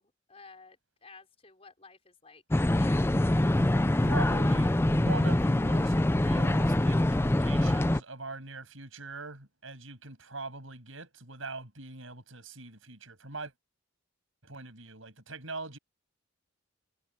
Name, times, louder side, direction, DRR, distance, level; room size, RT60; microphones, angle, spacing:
voice 1, 0.0-3.1, left 4 dB, 30° left, 5.0 m, -54 dB
sound 1, 2.5-8.0, left 1 dB, 10° left, 0.4 m, -24 dB
voice 2, 4.0-13.5 14.4-15.8, right 3 dB, 75° right, 6.9 m, -42 dB
head